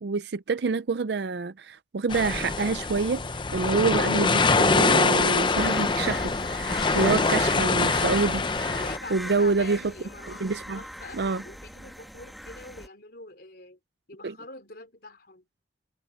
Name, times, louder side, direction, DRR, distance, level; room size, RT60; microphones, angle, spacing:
voice 1, 0.0-3.2 3.5-8.4 9.1-9.8 10.4-10.8 11.1-11.4 14.2-14.3, right 4 dB, 65° right, 0.5 m, -27 dB
sound 1, 2.1-9.0, left 3 dB, 25° left, 0.6 m, -24 dB
sound 2, 5.6-12.9, equal, ahead, 1.5 m, -40 dB
voice 2, 6.9-8.1 8.6-10.5 10.7-13.8 14.1-15.5, left 3 dB, 55° left, 4.0 m, -44 dB
head